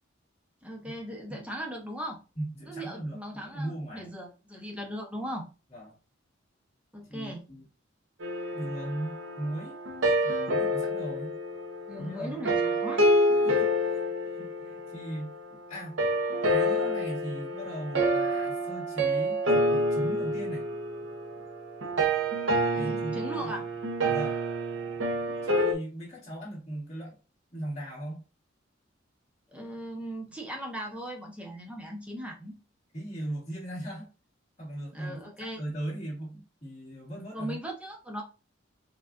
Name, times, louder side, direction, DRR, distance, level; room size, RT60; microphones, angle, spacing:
voice 1, 0.6-2.2 2.7-5.4 6.9-7.4 11.9-13.0 22.5-23.6 29.5-32.5 34.9-35.6 37.3-38.2, equal, 5° right, 0 dB, 0.9 m, -38 dB
voice 2, 2.4-4.1 5.7-6.0 7.1-7.7 8.5-9.8 10.2-11.4 12.0-12.8 13.3-15.3 15.7-16.0 16.5-20.6 22.8-23.6 24.1-24.4 25.4-27.2 27.5-28.2 32.9-34.1 34.6-37.6, right 1 dB, 35° left, -6 dB, 1.8 m, -38 dB
sound 1, 8.2-15.4 16.0-25.7, equal, 75° right, 0.8 m, -28 dB
4.6 x 2.4 x 2.5 m, 0.32 s
head